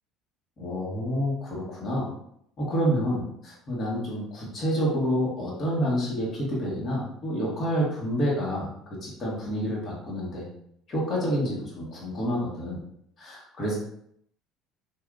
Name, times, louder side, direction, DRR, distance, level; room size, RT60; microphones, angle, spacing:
voice 1, 0.6-2.1 2.6-10.5 10.9-12.8 13.2-13.8, equal, 40° left, -5 dB, 1.3 m, -28 dB
3.3 x 2.6 x 2.5 m, 0.70 s
supercardioid pair, 95°, 0 cm